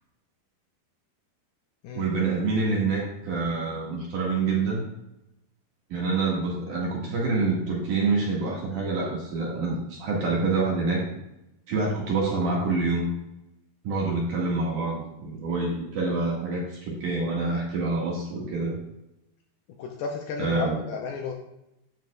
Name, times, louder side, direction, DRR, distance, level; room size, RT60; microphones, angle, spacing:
voice 1, 1.9-4.9 5.9-11.0 11.7-13.1 13.8-18.8 20.4-20.8, right 3 dB, 55° right, -4 dB, 2.8 m, -26 dB
voice 2, 19.8-21.3, left 5 dB, 80° left, 1 dB, 2.3 m, -33 dB
9.4 x 7.3 x 2.3 m, 0.87 s
omnidirectional pair, 4.9 m